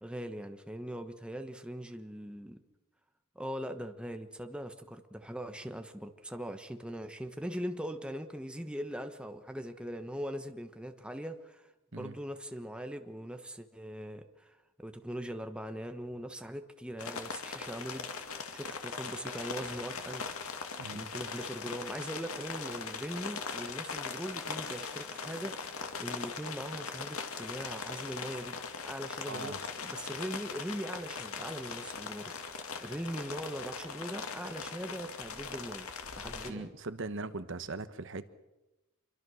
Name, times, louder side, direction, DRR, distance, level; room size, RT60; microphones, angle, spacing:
voice 1, 0.0-2.6 3.3-18.1 18.5-20.2 20.9-28.6 28.9-35.9 36.2-36.7, equal, 5° right, 1.2 m, -41 dB
sound 1, 17.0-36.5, left 5 dB, 80° left, 2.4 m, -40 dB
voice 2, 29.3-29.6 36.4-38.3, right 3 dB, 60° right, 1.1 m, -40 dB
26.5 x 23.5 x 6.4 m
head